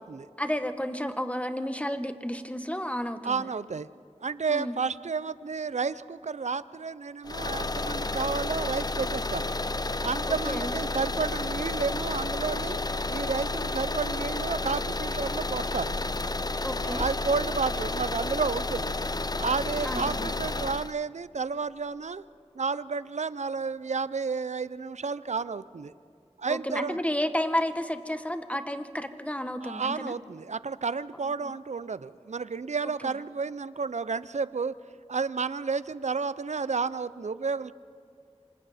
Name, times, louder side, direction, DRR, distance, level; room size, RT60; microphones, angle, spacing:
voice 1, 0.4-3.5 4.5-4.8 10.3-10.7 16.6-17.1 19.8-20.3 26.5-30.1 31.4-31.5, left 1 dB, 10° left, 8 dB, 1.2 m, -31 dB
voice 2, 3.2-3.9 4.2-9.5 10.0-12.8 13.1-16.0 16.8-19.0 19.4-22.2 22.6-25.9 26.4-27.0 29.6-34.7 35.1-37.7, right 5 dB, 90° right, 17 dB, 0.4 m, -31 dB
sound 1, 7.2-20.9, left 2 dB, 35° left, 0.5 m, -31 dB
27.0 x 25.5 x 4.2 m, 2.3 s
wide cardioid pair, 40°, 12 cm